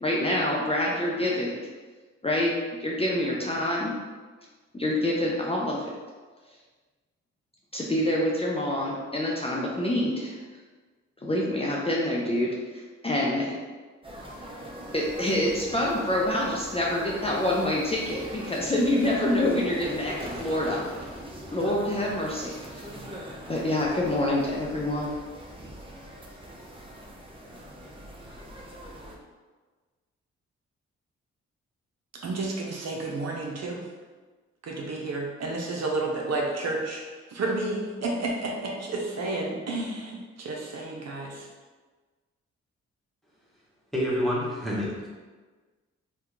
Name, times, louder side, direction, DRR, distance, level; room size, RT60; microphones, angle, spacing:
voice 1, 0.0-1.6 2.2-2.5 2.8-3.9 4.7-5.9 7.7-10.4 11.2-13.5 14.9-21.1 21.5-22.9 23.5-25.2, left 1 dB, 20° left, -4 dB, 0.6 m, -26 dB
sound 1, 14.0-29.2, equal, 20° right, 0.6 m, -41 dB
voice 2, 32.1-33.9 34.6-37.0 37.3-41.5, right 2 dB, 60° right, -1 dB, 0.6 m, -31 dB
voice 3, 43.9-45.1, equal, ahead, -7 dB, 1.2 m, -27 dB
2.8 x 2.2 x 3.7 m, 1.4 s
supercardioid pair, 50°, 29 cm